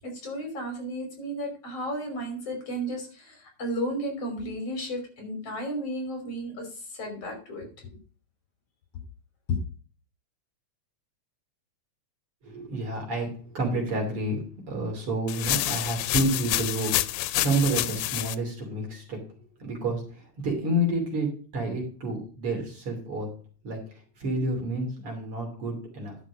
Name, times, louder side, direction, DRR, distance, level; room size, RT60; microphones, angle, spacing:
voice 1, 0.0-6.7 7.0-7.7, right 1 dB, 50° left, 3 dB, 4.2 m, -33 dB
voice 2, 12.4-23.3 23.6-23.8 24.2-26.2, right 1 dB, 45° right, 1 dB, 3.6 m, -29 dB
sound 1, 15.3-18.4, left 16 dB, 85° left, 2.1 m, -28 dB
11.5 x 6.2 x 5.1 m, 0.40 s
omnidirectional pair, 3.4 m